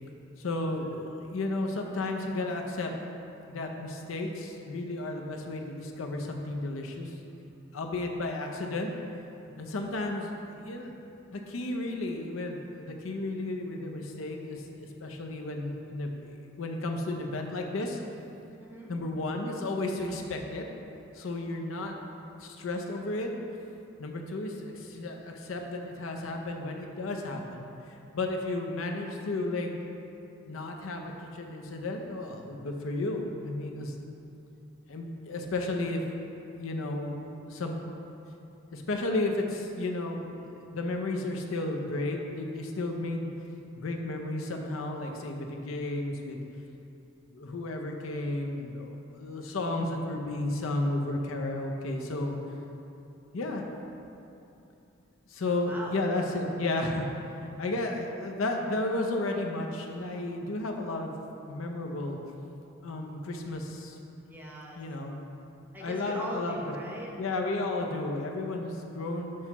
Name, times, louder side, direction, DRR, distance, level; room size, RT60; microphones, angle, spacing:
voice 1, 0.4-2.9 3.5-7.1 7.7-8.9 9.6-11.1 11.3-18.0 18.9-20.6 21.1-21.9 22.4-23.3 24.0-27.7 28.1-29.7 30.5-34.0 34.9-36.0 36.3-37.8 38.7-43.3 43.8-46.4 47.3-48.9 49.2-52.4 53.3-53.6 55.3-57.1 57.4-61.1 61.5-62.2 62.8-64.0 64.8-65.3 65.8-66.6 67.2-69.4, left 2 dB, 85° left, 2 dB, 0.6 m, -33 dB
voice 2, 18.6-18.9 21.8-21.9 55.6-56.0 64.3-64.8 65.7-67.1, right 1 dB, 10° right, -3 dB, 0.7 m, -40 dB
6.3 x 2.9 x 5.7 m, 2.8 s
head